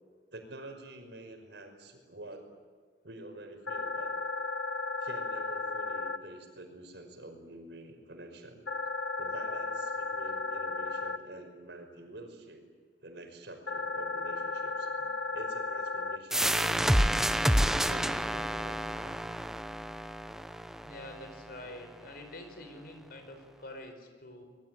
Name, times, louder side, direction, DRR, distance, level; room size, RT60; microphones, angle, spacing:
voice 1, 0.3-2.5 3.0-4.1 5.0-8.6 9.2-12.6 13.0-17.3 17.8-19.2, right 1 dB, 80° right, 5 dB, 5.5 m, -47 dB
sound 1, 3.7-6.2 8.7-11.2 13.7-16.2, left 3 dB, 90° left, 1.3 m, -34 dB
sound 2, 16.3-21.7, equal, 5° right, 0.9 m, -29 dB
voice 2, 20.8-24.4, left 1 dB, 60° left, 6 dB, 5.2 m, -46 dB
26.0 x 21.5 x 9.3 m, 1.5 s
head